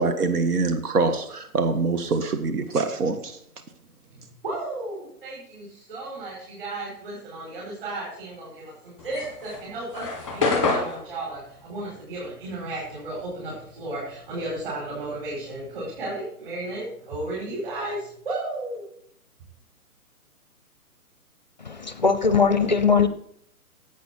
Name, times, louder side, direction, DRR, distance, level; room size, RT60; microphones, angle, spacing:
voice 1, 0.0-3.4, right 3 dB, 80° right, 7 dB, 1.7 m, -24 dB
voice 2, 4.4-18.9, right 2 dB, 35° right, -6 dB, 5.3 m, -34 dB
sound 1, 9.0-13.7 14.0-16.0, left 3 dB, ahead, 1.0 m, -29 dB
voice 3, 21.6-23.1, left 5 dB, 30° left, 11 dB, 0.5 m, -20 dB
11.5 x 8.3 x 4.3 m, 0.66 s
hypercardioid pair, 175°, 45 cm